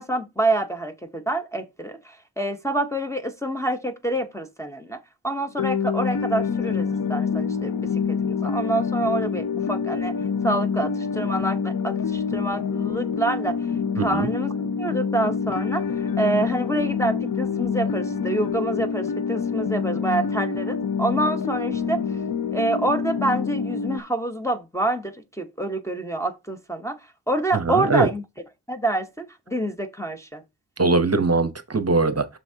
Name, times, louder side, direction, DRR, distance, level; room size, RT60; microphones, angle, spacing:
voice 1, 0.0-5.0 5.2-7.7 8.1-10.1 10.4-13.6 14.0-15.8 16.2-22.0 22.5-27.0 27.3-28.2 28.7-30.4, right 2 dB, 5° left, 0.8 m, -27 dB
sound 1, 5.6-24.0, left 6 dB, 60° left, 0.6 m, -26 dB
voice 2, 14.0-14.3 27.5-28.1 30.8-32.3, right 3 dB, 40° right, 0.9 m, -21 dB
8.1 x 6.4 x 2.7 m
wide cardioid pair, 105°, 41 cm